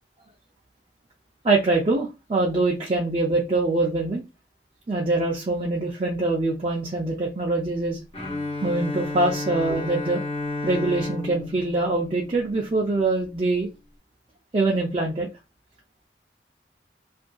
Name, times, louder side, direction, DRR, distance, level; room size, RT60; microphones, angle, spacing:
voice 1, 1.4-4.2 4.9-8.0 8.6-10.2 10.6-13.7 14.5-15.3, right 2 dB, 30° right, -2 dB, 0.4 m, -24 dB
Bowed string instrument, 8.1-13.0, left 2 dB, 30° left, 0.8 m, -32 dB
2.7 x 2.5 x 2.2 m, 0.26 s
head